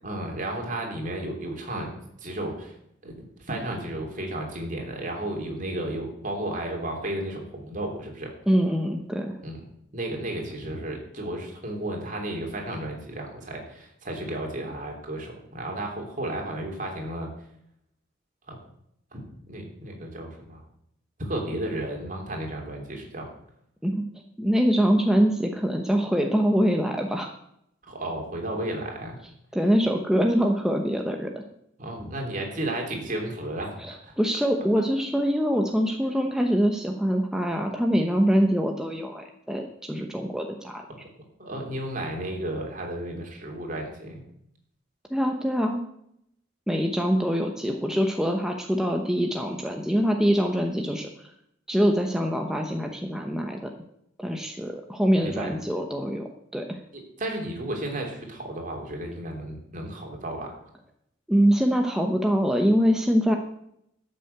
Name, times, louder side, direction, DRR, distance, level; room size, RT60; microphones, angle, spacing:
voice 1, 0.0-1.9 2.2-2.7 3.0-3.1 3.4-8.3 9.4-9.6 9.9-17.3 18.5-18.6 19.1-20.6 21.2-23.3 27.9-29.2 31.8-34.1 41.4-44.2 55.2-55.5 57.2-60.6, right 1 dB, 45° right, 1 dB, 3.2 m, -33 dB
voice 2, 8.5-9.4 23.8-24.0 24.4-27.3 29.5-31.3 33.8-40.8 45.1-45.8 46.7-51.3 51.7-53.7 54.2-56.8 61.3-63.4, equal, 5° right, 2 dB, 0.9 m, -24 dB
12.5 x 6.7 x 7.9 m, 0.75 s
head